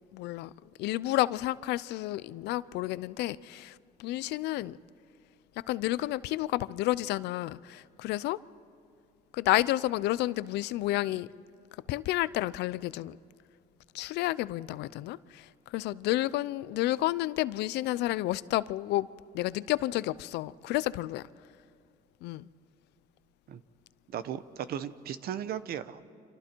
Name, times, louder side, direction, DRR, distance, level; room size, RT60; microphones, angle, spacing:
voice 1, 0.1-0.5 0.8-4.8 5.7-8.4 9.3-11.3 11.9-13.2 13.9-19.1 19.3-21.2 22.2-22.5, left 16 dB, 85° left, 0.6 m, -30 dB
voice 2, 24.1-26.1, right 9 dB, 65° right, 1.0 m, -36 dB
30.0 x 26.0 x 4.6 m
cardioid pair, 110°, 17 cm